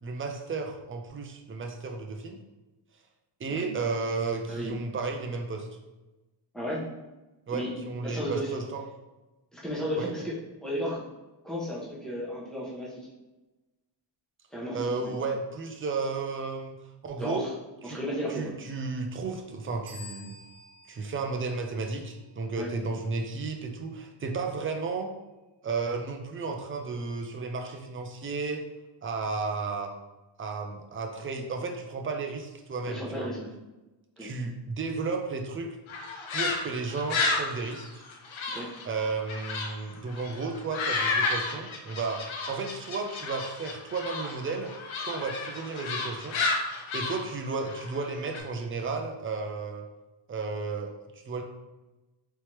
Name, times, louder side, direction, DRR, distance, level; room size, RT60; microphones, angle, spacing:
voice 1, 0.0-2.4 3.4-5.7 7.5-8.8 10.0-10.1 14.7-17.5 17.9-18.0 18.3-20.4 20.9-25.1 25.6-28.6 29.0-29.9 30.4-33.3 34.2-35.8 36.3-38.0 38.8-46.4 46.9-49.9 50.3-51.4, right 4 dB, 30° right, 3 dB, 0.5 m, -33 dB
voice 2, 8.0-8.5 9.5-10.3 10.6-11.0 11.4-13.0 14.5-15.2 17.2-17.5 17.8-18.5 22.6-22.7 32.8-33.5 34.2-34.3 38.5-38.7, equal, ahead, -7 dB, 1.1 m, -33 dB
sound 1, 19.9-22.3, left 3 dB, 45° right, 0.9 m, -50 dB
sound 2, 35.9-39.7 40.1-48.4, left 3 dB, 85° left, 0.8 m, -32 dB
4.3 x 3.3 x 3.0 m, 1.1 s
wide cardioid pair, 160°, 46 cm